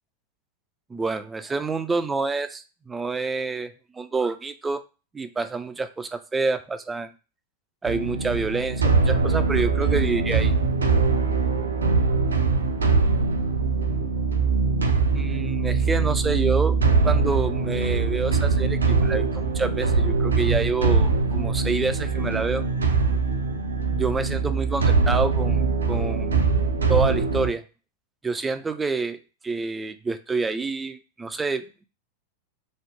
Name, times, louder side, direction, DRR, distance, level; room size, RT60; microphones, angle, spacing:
voice 1, 0.9-4.8 5.1-7.1 7.8-10.5 15.1-16.8 17.0-22.7 23.9-25.6 25.9-26.4 26.9-27.6 28.2-29.2 29.4-31.8, right 4 dB, 15° right, 10 dB, 0.3 m, -28 dB
sound 1, 7.9-27.5, right 4 dB, 75° right, 0.4 m, -22 dB
3.0 x 2.0 x 3.5 m, 0.33 s
figure-of-eight pair, 90°, 0 cm